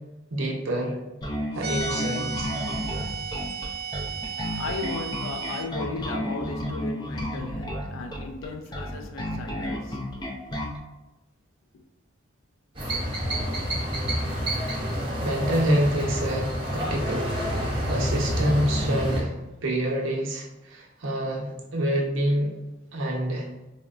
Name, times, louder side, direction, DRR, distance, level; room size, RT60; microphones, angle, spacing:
voice 1, 0.3-0.9 1.5-2.5 15.2-17.3 17.9-19.3 19.6-22.5 22.9-23.5, right 1 dB, 75° right, 0.7 m, -27 dB
Bass guitar, 1.2-10.8, equal, 20° left, 0.5 m, -32 dB
sound 1, 1.6-5.7, right 5 dB, 50° right, 0.3 m, -34 dB
voice 2, 4.6-10.2, left 3 dB, 80° left, 0.4 m, -36 dB
sound 2, 12.7-19.2, equal, 25° right, 0.7 m, -28 dB
4.3 x 2.1 x 2.4 m
head